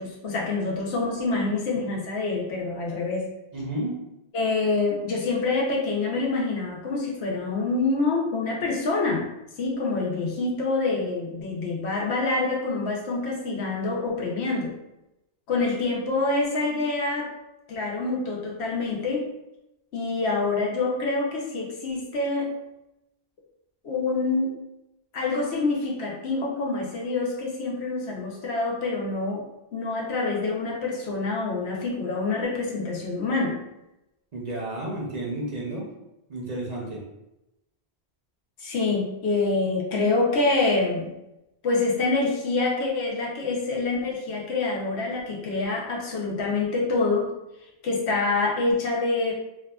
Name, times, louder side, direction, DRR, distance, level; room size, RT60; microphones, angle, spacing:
voice 1, 0.0-3.3 4.3-9.2 9.6-14.7 15.5-17.3 17.7-19.3 19.9-22.5 23.8-24.5 25.1-29.5 29.7-33.6 38.6-41.1 41.6-47.3 47.8-49.3, left 3 dB, 90° left, -2 dB, 0.9 m, -26 dB
voice 2, 3.5-4.0 34.3-35.9 36.3-37.0, right 1 dB, 50° right, -4 dB, 0.6 m, -31 dB
2.7 x 2.3 x 2.2 m, 0.91 s
omnidirectional pair, 1.1 m